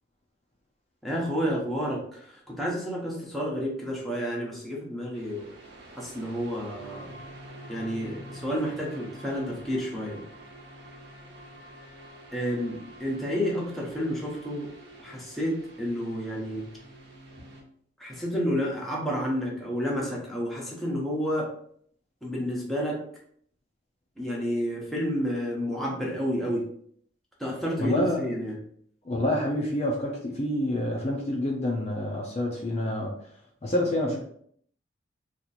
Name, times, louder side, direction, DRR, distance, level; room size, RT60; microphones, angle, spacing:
voice 1, 1.0-5.5 6.0-7.2 7.7-10.2 12.3-14.7 15.0-16.7 18.0-21.5 22.2-23.0 24.2-26.7 27.4-28.6, equal, ahead, -4 dB, 0.9 m, -30 dB
sound 1, 5.1-17.6, equal, 75° right, 1.2 m, -47 dB
voice 2, 27.8-28.2 29.1-33.1 33.6-34.2, left 1 dB, 35° left, -1 dB, 0.5 m, -27 dB
2.9 x 2.5 x 4.1 m, 0.63 s
head